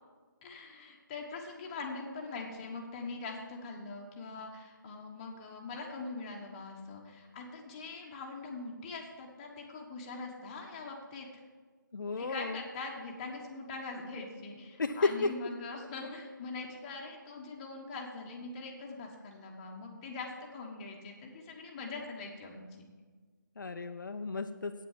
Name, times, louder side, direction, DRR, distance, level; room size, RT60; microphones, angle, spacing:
voice 1, 0.4-11.4 12.2-22.9, left 3 dB, 20° left, 0 dB, 1.3 m, -42 dB
voice 2, 11.9-12.6 14.8-15.3 23.6-24.7, left 3 dB, 70° left, 6 dB, 0.7 m, -33 dB
8.8 x 7.6 x 7.4 m, 1.5 s
figure-of-eight pair, 155°, 11 cm